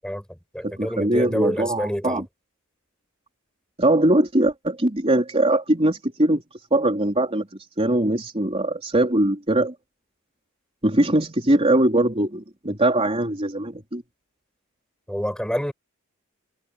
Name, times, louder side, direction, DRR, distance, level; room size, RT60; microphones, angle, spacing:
voice 1, 0.0-2.2 15.1-15.7, equal, 5° left, 8.0 m, -28 dB
voice 2, 0.6-2.2 3.8-6.4 6.7-7.5 7.8-9.7 10.8-14.0, right 1 dB, 30° right, 4.0 m, -21 dB
head